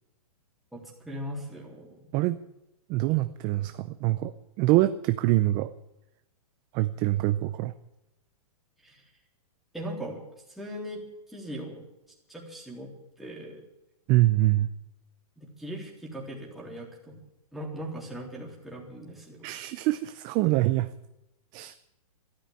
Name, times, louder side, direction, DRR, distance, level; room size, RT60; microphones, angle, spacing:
voice 1, 0.7-2.1 8.8-9.0 9.7-10.2 10.5-11.8 12.3-12.9 13.2-13.6 15.4-17.2 17.5-19.5, equal, ahead, -4 dB, 3.5 m, -39 dB
voice 2, 2.9-5.7 6.7-7.7 14.1-14.7 19.4-20.9 21.5-21.7, right 16 dB, 25° right, 11 dB, 0.5 m, -25 dB
13.0 x 12.5 x 8.9 m, 0.91 s
hypercardioid pair, 155°, 19 cm